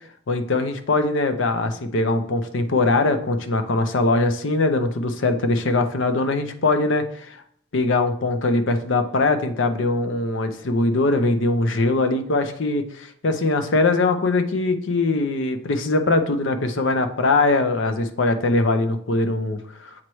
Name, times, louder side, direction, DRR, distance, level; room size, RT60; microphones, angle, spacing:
voice 1, 0.3-7.4 7.7-20.0, left 2 dB, 70° left, 8 dB, 0.6 m, -21 dB
7.3 x 4.6 x 3.1 m, 0.63 s
head